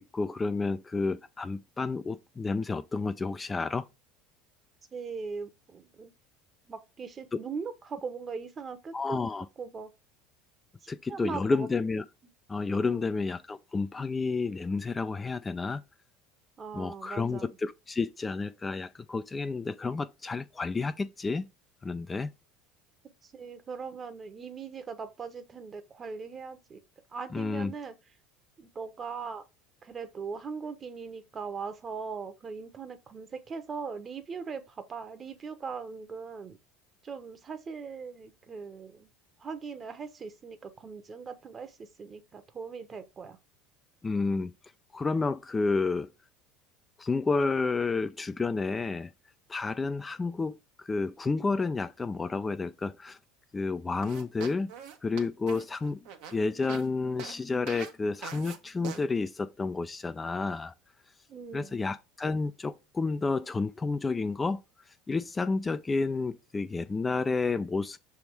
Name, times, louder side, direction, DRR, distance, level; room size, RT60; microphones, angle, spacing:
voice 1, 0.0-3.9 7.3-7.4 8.9-9.5 10.9-12.0 12.5-15.8 16.7-21.5 21.8-22.3 27.3-27.7 44.0-44.5 44.9-46.1 47.0-49.1 49.5-53.2 53.5-54.7 55.0-56.0 56.3-60.7 61.5-64.6 65.1-68.0, left 4 dB, 20° left, 0.4 m, -30 dB
voice 2, 4.9-6.1 6.7-9.2 9.6-9.9 11.1-11.7 12.9-13.1 16.6-17.5 23.2-26.8 27.1-27.9 28.6-29.4 29.8-36.6 37.0-39.1 39.4-43.4 61.3-61.8, right 5 dB, 35° right, 1.0 m, -40 dB
sound 1, 54.0-56.9 57.2-57.4 57.7-57.9 58.2-58.6 58.8-59.0, right 8 dB, 70° right, 1.1 m, -42 dB
5.9 x 3.5 x 4.6 m
hypercardioid pair, 85°, 0 cm